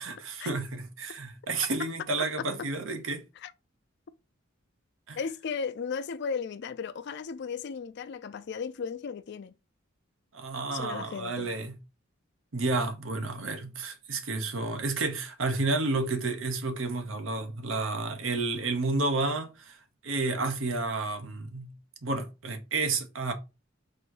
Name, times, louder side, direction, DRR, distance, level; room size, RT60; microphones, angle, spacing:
voice 1, 0.0-3.2 5.1-5.2 10.3-11.8 12.5-19.8 20.0-21.8 22.0-23.3, right 3 dB, 80° right, 0.9 m, -31 dB
voice 2, 5.2-9.5 10.7-11.5, left 6 dB, 55° left, 0.4 m, -35 dB
4.1 x 2.6 x 4.7 m
head